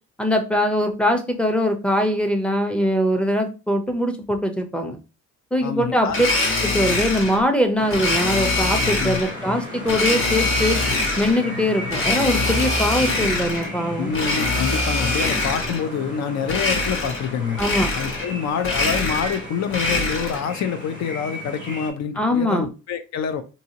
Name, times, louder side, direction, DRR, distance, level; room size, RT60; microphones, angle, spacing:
voice 1, 0.2-5.0 5.5-6.3 6.6-10.8 11.2-14.1 17.6-17.9 22.2-22.7, equal, 5° left, 0.5 m, -22 dB
voice 2, 5.6-6.2 9.0-9.2 14.0-17.6 17.9-23.4, left 7 dB, 65° left, 0.6 m, -26 dB
Domestic sounds home sounds, 6.1-7.4 7.9-9.3 9.8-11.4 11.9-13.7 14.1-15.9 16.4-17.3 17.6-18.3 18.6-20.5, left 2 dB, 45° left, 1.2 m, -23 dB
sound 1, 7.8-21.9, left 2 dB, 80° left, 1.4 m, -34 dB
2.7 x 2.7 x 2.7 m
cardioid pair, 90°, 30 cm